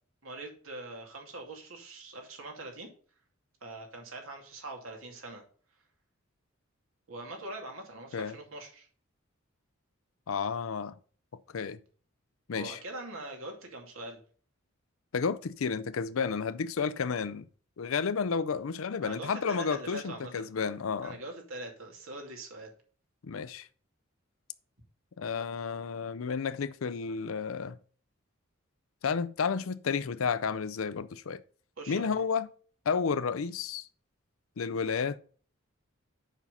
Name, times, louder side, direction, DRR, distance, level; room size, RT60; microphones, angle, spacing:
voice 1, 0.2-2.9 3.6-5.4 7.1-8.9 12.5-14.2 19.0-20.5 21.0-22.7 31.8-32.2, right 2 dB, 75° right, 2.5 m, -43 dB
voice 2, 10.3-10.9 11.5-11.8 12.5-12.8 15.1-17.4 17.8-21.2 23.2-23.7 25.2-27.8 29.0-31.4 31.9-32.5 32.9-33.9 34.6-35.2, left 5 dB, 75° left, 0.5 m, -31 dB
7.2 x 5.7 x 5.5 m
head